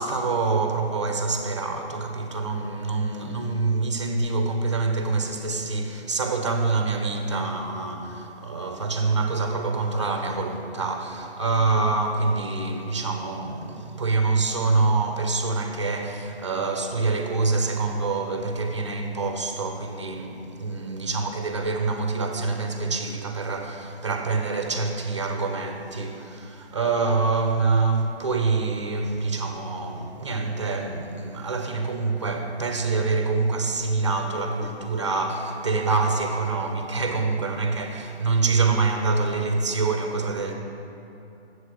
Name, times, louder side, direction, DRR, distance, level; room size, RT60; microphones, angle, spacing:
voice 1, 0.0-40.5, right 3 dB, 25° right, 0.5 m, -26 dB
9.9 x 7.7 x 3.8 m
figure-of-eight pair, 145°, 33 cm